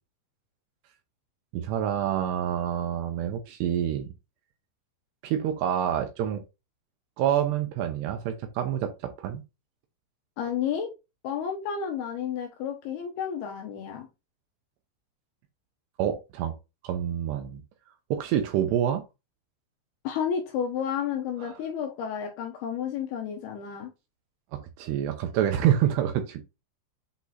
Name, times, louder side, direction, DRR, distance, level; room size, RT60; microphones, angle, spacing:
voice 1, 1.5-4.1 5.2-6.4 7.2-9.4 16.0-16.5 16.8-17.6 18.1-19.0 21.4-21.6 24.5-26.4, right 10 dB, 75° right, 2.6 m, -27 dB
voice 2, 10.4-10.9 11.2-14.1 20.0-23.9, left 8 dB, 75° left, 2.5 m, -31 dB
8.4 x 3.0 x 4.0 m
omnidirectional pair, 5.4 m